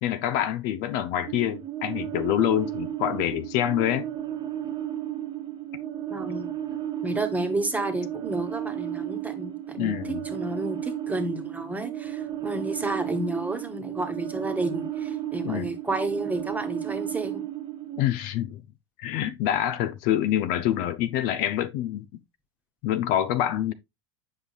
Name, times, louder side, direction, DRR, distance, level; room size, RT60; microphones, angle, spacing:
voice 1, 0.0-4.1 9.8-10.2 15.4-15.7 18.0-18.6 19.0-22.1 22.8-23.7, left 11 dB, 55° left, 0.6 m, -26 dB
sound 1, 1.2-18.0, right 12 dB, 35° right, 1.1 m, -33 dB
voice 2, 6.1-6.5 7.0-17.4, right 2 dB, 10° right, 1.3 m, -31 dB
7.9 x 5.5 x 2.4 m
hypercardioid pair, 85°, 14 cm